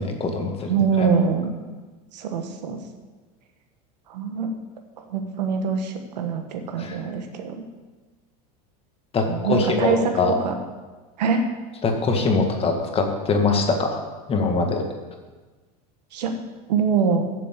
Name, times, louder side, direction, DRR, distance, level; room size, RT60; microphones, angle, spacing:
voice 1, 0.0-1.1 6.8-7.0 9.1-10.3 11.8-14.0 14.3-14.8, left 3 dB, 30° left, 3 dB, 1.8 m, -23 dB
voice 2, 0.7-1.6 2.1-2.8 4.1-4.5 5.0-7.6 9.3-10.1 10.4-10.5 11.2-11.4 16.1-16.3 16.7-17.2, right 6 dB, 90° right, 5 dB, 1.4 m, -24 dB
7.5 x 7.0 x 8.1 m, 1.3 s
supercardioid pair, 115°, 21 cm